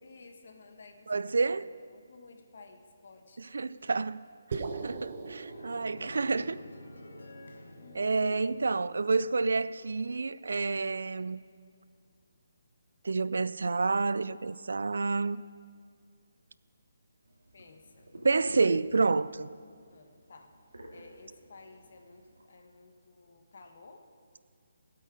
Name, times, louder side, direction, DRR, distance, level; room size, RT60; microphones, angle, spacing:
voice 1, 0.0-3.5 7.8-8.3 11.0-11.2 17.5-18.1 19.9-20.5 20.9-24.0, left 3 dB, 60° left, 1.4 m, -54 dB
voice 2, 1.1-1.6 3.5-4.2 4.5-6.6 8.0-11.4 13.0-15.4 18.2-19.5, right 4 dB, 75° right, 0.4 m, -29 dB
sound 1, 4.5-8.9, right 4 dB, 50° right, 1.1 m, -42 dB
sound 2, 5.5-9.6, left 1 dB, 80° left, 1.4 m, -49 dB
sound 3, 17.2-22.5, right 1 dB, 90° right, 2.2 m, -49 dB
16.5 x 8.4 x 4.9 m
figure-of-eight pair, 150°, 0 cm